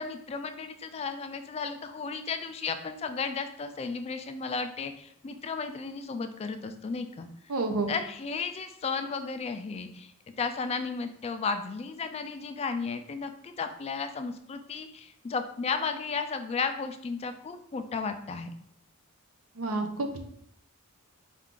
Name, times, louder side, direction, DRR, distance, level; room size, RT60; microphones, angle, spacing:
voice 1, 0.0-7.3 7.9-10.1 10.4-18.5, left 5 dB, 30° left, 8 dB, 0.3 m, -34 dB
voice 2, 7.5-7.9 19.5-20.2, right 3 dB, 80° right, 5 dB, 0.7 m, -29 dB
4.4 x 2.4 x 3.6 m, 0.70 s
head